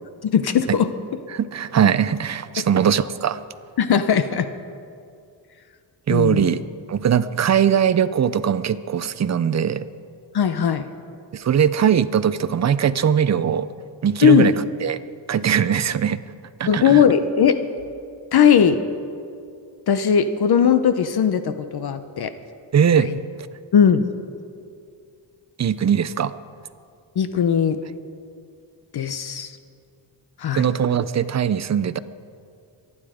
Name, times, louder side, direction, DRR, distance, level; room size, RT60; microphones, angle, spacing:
voice 1, 0.2-0.9 2.6-2.7 3.8-4.5 6.1-6.5 10.3-10.9 14.2-14.5 16.7-17.6 18.3-18.8 19.9-22.3 23.0-23.2 23.7-24.0 27.2-27.8 28.9-29.6 30.4-30.6, left 8 dB, 55° left, 11 dB, 0.7 m, -18 dB
voice 2, 1.3-3.4 6.1-6.6 6.9-9.9 11.3-13.7 14.0-14.5 14.8-15.0 15.3-16.2 16.6-17.0 22.7-23.1 25.6-26.3 30.5-32.0, right 8 dB, 40° right, 14 dB, 0.5 m, -20 dB
24.5 x 9.8 x 5.0 m, 2.4 s
wide cardioid pair, 135°, 46 cm